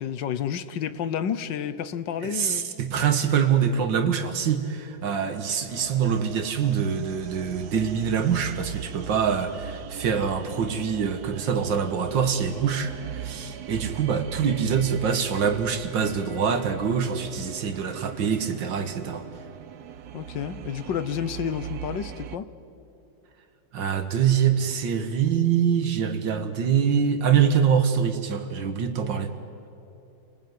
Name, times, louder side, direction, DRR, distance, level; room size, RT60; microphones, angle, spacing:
voice 1, 0.0-2.7 20.1-22.5, left 8 dB, 75° left, 14 dB, 1.6 m, -30 dB
voice 2, 2.2-19.3 23.7-29.3, right 7 dB, 80° right, 8 dB, 2.1 m, -24 dB
sound 1, 5.7-22.4, right 9 dB, 60° right, 1.3 m, -40 dB
29.0 x 20.0 x 9.5 m, 2.9 s
omnidirectional pair, 2.0 m